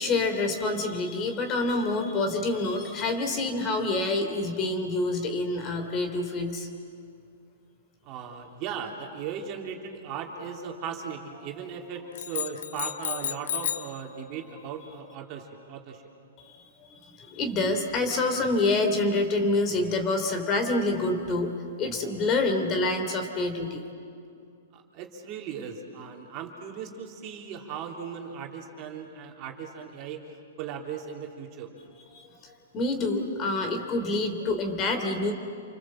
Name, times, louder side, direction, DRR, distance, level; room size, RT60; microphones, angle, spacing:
voice 1, 0.0-6.7 16.4-23.8 32.1-35.3, left 2 dB, 25° left, 5 dB, 2.9 m, -27 dB
voice 2, 8.0-16.0 24.7-31.7, right 7 dB, 35° right, 1 dB, 3.1 m, -38 dB
sound 1, 12.2-14.0, left 9 dB, 75° left, 0.9 m, -32 dB
29.0 x 25.0 x 7.5 m, 2.5 s
hypercardioid pair, 150°, 0 cm